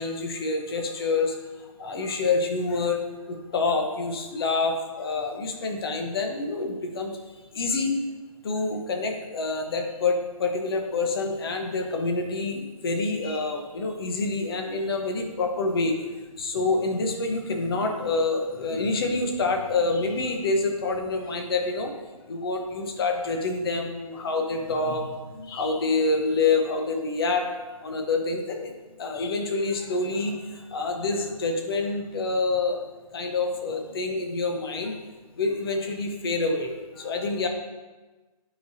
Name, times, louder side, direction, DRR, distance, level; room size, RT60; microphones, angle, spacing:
voice 1, 0.0-3.0 3.3-7.2 7.5-8.1 8.4-21.9 22.3-27.4 27.8-32.9 33.1-34.9 35.4-37.5, left 3 dB, 40° left, 3 dB, 1.0 m, -27 dB
8.9 x 5.2 x 2.7 m, 1.2 s
hypercardioid pair, 160°, 19 cm